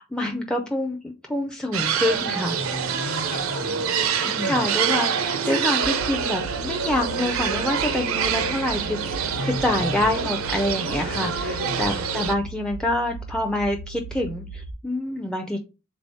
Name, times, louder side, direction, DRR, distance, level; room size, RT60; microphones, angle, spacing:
voice 1, 0.0-2.6 4.1-15.6, left 1 dB, 5° left, 2 dB, 0.4 m, -27 dB
sound 1, 1.7-12.4, right 7 dB, 85° right, 0.6 m, -26 dB
voice 2, 2.5-3.9 4.2-4.7 9.4-10.1 11.0-11.4 11.7-12.0, left 1 dB, 40° left, 5 dB, 1.2 m, -34 dB
sound 2, 5.8-14.7, right 2 dB, 60° left, 0.5 m, -38 dB
3.6 x 3.4 x 4.0 m, 0.31 s
head